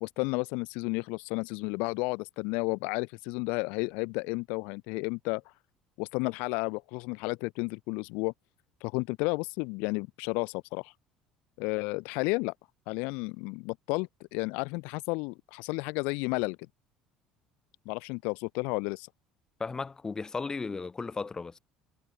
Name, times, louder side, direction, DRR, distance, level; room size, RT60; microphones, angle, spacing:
voice 1, 0.0-5.5 6.0-8.3 8.8-10.9 11.6-12.5 12.9-16.6 17.9-19.1, left 29 dB, 70° left, 0.6 m, -32 dB
voice 2, 19.6-21.6, left 4 dB, 25° left, 2.6 m, -35 dB
hypercardioid pair, 70°, 3 cm